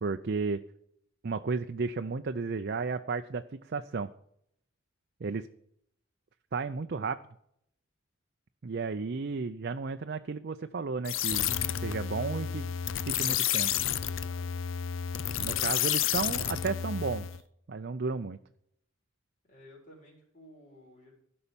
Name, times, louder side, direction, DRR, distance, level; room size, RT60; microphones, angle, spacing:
voice 1, 0.0-0.6 1.2-4.1 5.2-5.5 6.5-7.2 8.6-11.5 11.8-12.7 13.1-13.7 15.4-17.3 17.7-18.4, right 4 dB, 55° right, 7 dB, 0.5 m, -33 dB
sound 1, 11.0-17.4, left 10 dB, 80° left, 0.5 m, -31 dB
voice 2, 13.0-14.6 15.4-15.8 19.5-21.1, left 1 dB, 40° left, -4 dB, 4.3 m, -55 dB
15.5 x 5.5 x 7.1 m, 0.72 s
head